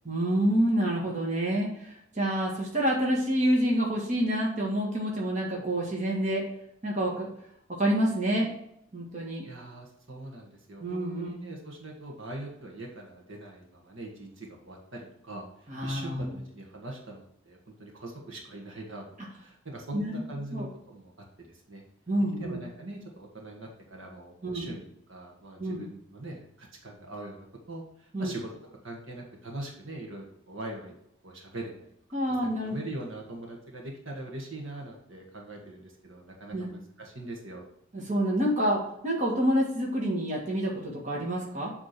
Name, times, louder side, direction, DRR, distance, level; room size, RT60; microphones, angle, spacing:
voice 1, 0.0-6.5 6.8-7.3 7.7-8.5 8.9-9.5 10.8-11.3 15.7-16.4 19.9-20.2 20.5-20.7 22.1-22.6 24.4-24.7 25.6-25.8 28.1-28.3 32.1-32.7 36.5-36.7 37.9-41.7, equal, 35° right, -3 dB, 1.5 m, -28 dB
voice 2, 9.4-19.0 19.4-21.1 21.4-21.8 22.4-30.9 31.2-31.7 32.6-37.6, right 2 dB, 70° right, 0 dB, 1.6 m, -42 dB
8.3 x 3.5 x 5.9 m, 0.73 s
head